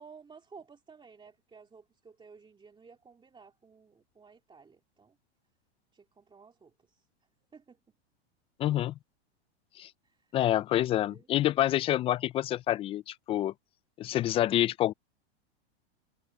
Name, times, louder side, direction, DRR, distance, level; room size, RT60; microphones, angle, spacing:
voice 1, 0.0-5.2 5.9-7.1 7.5-7.8 10.0-10.3 11.0-11.3, right 5 dB, 15° right, 2.8 m, -54 dB
voice 2, 8.6-8.9 9.8-9.9 10.3-13.5 14.0-14.9, left 13 dB, 20° left, 0.3 m, -27 dB
hypercardioid pair, 125°, 34 cm